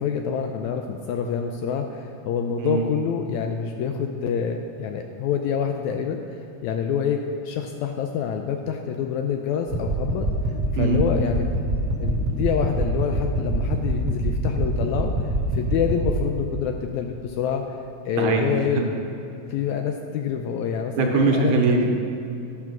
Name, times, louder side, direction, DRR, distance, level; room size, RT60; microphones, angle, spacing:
voice 1, 0.0-10.3 10.7-11.5 12.0-15.1 15.5-17.6 18.1-18.8 19.5-21.7, left 7 dB, 80° left, 5 dB, 1.7 m, -27 dB
sound 1, 9.7-16.1, right 1 dB, 50° right, 1.1 m, -25 dB
voice 2, 18.2-18.9 21.0-21.9, right 4 dB, 85° right, 2 dB, 2.6 m, -21 dB
11.0 x 6.0 x 6.0 m, 2.8 s
omnidirectional pair, 3.7 m